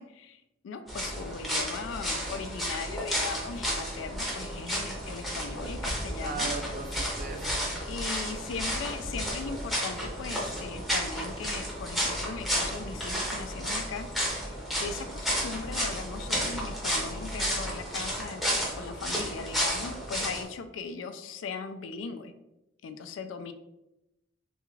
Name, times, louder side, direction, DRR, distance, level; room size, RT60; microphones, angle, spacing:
voice 1, 0.0-6.5 7.9-22.3 22.8-23.5, left 5 dB, 85° left, 9 dB, 0.3 m, -39 dB
sound 1, 0.9-20.4, equal, ahead, 0.7 m, -32 dB
sound 2, 2.1-17.8, equal, 70° right, 1.1 m, -46 dB
voice 2, 6.2-7.8, right 4 dB, 45° right, 4 dB, 0.5 m, -38 dB
3.4 x 2.4 x 3.1 m, 0.90 s
head